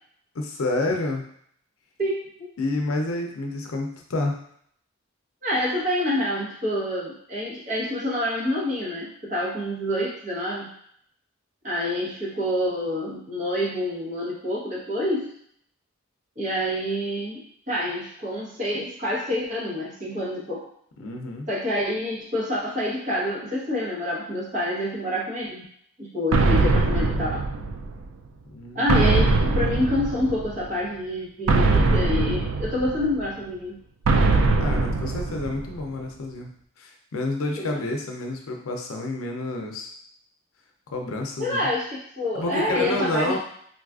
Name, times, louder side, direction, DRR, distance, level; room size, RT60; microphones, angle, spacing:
voice 1, 0.3-1.2 2.6-4.4 21.0-21.5 28.5-28.9 34.6-36.5 36.8-39.9 40.9-41.7 42.3-43.4, left 2 dB, 85° left, 2 dB, 0.5 m, -29 dB
voice 2, 2.0-2.5 5.4-10.7 11.6-15.4 16.4-20.7 21.5-25.7 26.0-27.5 28.7-33.8 37.6-37.8 41.4-43.4, left 1 dB, 35° right, -6 dB, 1.0 m, -27 dB
sound 1, 26.3-28.1 28.9-30.6 31.5-33.3 34.1-35.8, right 3 dB, 75° right, 0.4 m, -21 dB
3.8 x 2.4 x 2.4 m, 0.65 s
head